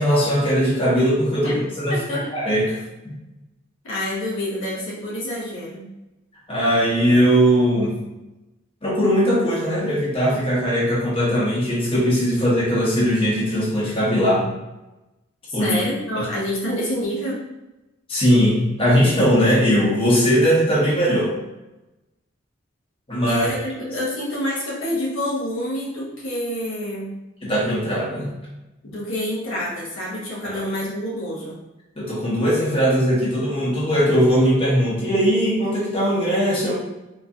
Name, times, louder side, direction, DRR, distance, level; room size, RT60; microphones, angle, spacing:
voice 1, 0.0-2.0 2.3-2.7 3.0-3.1 6.5-7.9 8.8-14.4 15.5-15.8 18.1-21.3 23.1-23.5 27.4-28.4 30.5-30.6 32.0-36.7, equal, 30° left, -6 dB, 1.1 m, -19 dB
voice 2, 1.9-2.3 3.8-5.8 15.5-17.4 23.3-27.1 28.8-31.6, left 1 dB, 75° left, -5 dB, 1.0 m, -27 dB
3.9 x 3.1 x 2.4 m, 0.99 s
head